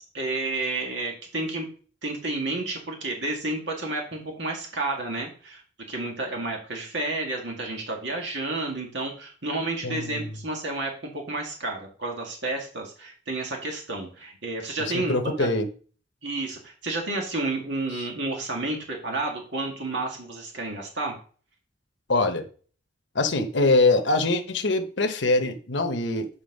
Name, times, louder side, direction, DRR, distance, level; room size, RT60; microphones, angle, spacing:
voice 1, 0.1-1.7 2.0-5.6 5.9-15.5 16.2-21.2, right 2 dB, 70° right, 0 dB, 2.1 m, -31 dB
voice 2, 9.8-10.3 14.8-15.7 22.1-22.5 23.1-26.3, left 2 dB, 70° left, 6 dB, 1.0 m, -23 dB
8.9 x 4.2 x 5.4 m, 0.41 s
head